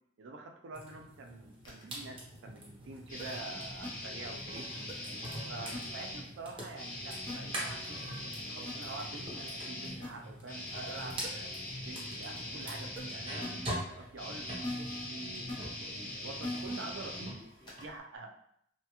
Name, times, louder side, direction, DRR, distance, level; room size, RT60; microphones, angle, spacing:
voice 1, 0.2-4.7 5.4-11.5 11.8-17.4 17.7-18.3, right 3 dB, 75° right, 3 dB, 0.5 m, -46 dB
sound 1, 0.7-15.9 16.2-17.9, right 1 dB, 30° right, 0.8 m, -45 dB
sound 2, 1.6-1.8 3.2-3.3 3.8-3.9 4.9-5.0 5.7-5.8 7.3-7.4 8.7-8.8 10.0-10.1 10.9-11.0 11.2-11.3 13.0-13.1 13.4-13.5 14.6-15.0 15.5-15.6 16.4-16.8 17.7-17.8, left 1 dB, 25° left, 0.6 m, -39 dB
sound 3, 3.1-6.3 6.7-17.9, left 1 dB, 45° left, 1.0 m, -42 dB
2.8 x 2.3 x 2.9 m, 0.70 s
head